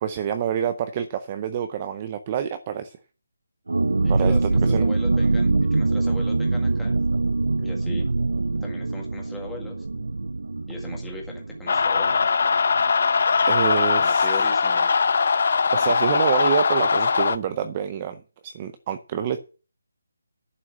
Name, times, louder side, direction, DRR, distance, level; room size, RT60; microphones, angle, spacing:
voice 1, 0.0-3.0 4.1-4.9 13.5-14.3 15.7-19.4, right 9 dB, 20° right, 10 dB, 0.5 m, -27 dB
sound 1, 3.7-13.1 13.4-13.5 13.8-14.1, right 3 dB, 90° right, 0.7 m, -24 dB
voice 2, 4.0-7.0 7.6-8.1 8.6-9.9 10.7-12.2 14.0-14.9, left 2 dB, 5° left, -1 dB, 1.8 m, -39 dB
sound 2, 11.7-17.4, left 5 dB, 45° left, 0.7 m, -21 dB
11.0 x 5.8 x 7.5 m, 0.37 s
hypercardioid pair, 175°, 0 cm